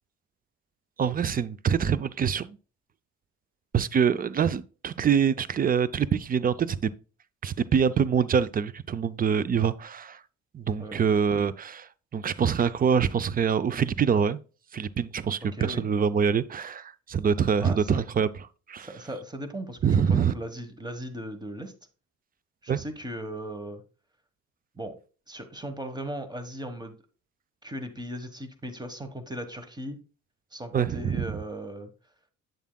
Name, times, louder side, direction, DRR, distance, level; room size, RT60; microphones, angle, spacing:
voice 1, 1.0-2.6 3.7-6.9 7.4-10.2 10.5-14.4 14.7-18.3 18.7-18.9 19.8-20.3 22.7-22.8 30.7-31.3, right 7 dB, 30° right, 0.5 m, -25 dB
voice 2, 15.4-15.9 17.6-18.0 18.8-21.7 22.6-23.8 24.7-24.9 25.3-26.9 27.6-30.0 30.5-31.9, right 1 dB, 15° right, 1.3 m, -37 dB
8.4 x 7.2 x 2.3 m
cardioid pair, 90°, 30 cm